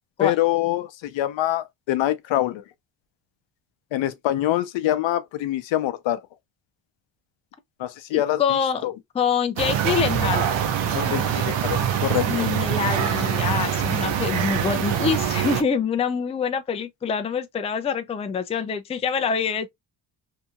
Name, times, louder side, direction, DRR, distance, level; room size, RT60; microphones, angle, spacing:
voice 1, 0.2-2.6 3.9-6.2 7.8-8.4 8.8-8.9 10.9-12.2, left 14 dB, 80° left, 0.6 m, -24 dB
voice 2, 8.1-8.9 9.1-10.5 12.3-19.7, left 6 dB, 15° left, 0.3 m, -25 dB
sound 1, 9.6-15.6, right 9 dB, 90° right, 0.8 m, -24 dB
sound 2, 10.8-14.1, right 3 dB, 30° right, 0.8 m, -39 dB
2.8 x 2.7 x 2.2 m
cardioid pair, 115°, 44 cm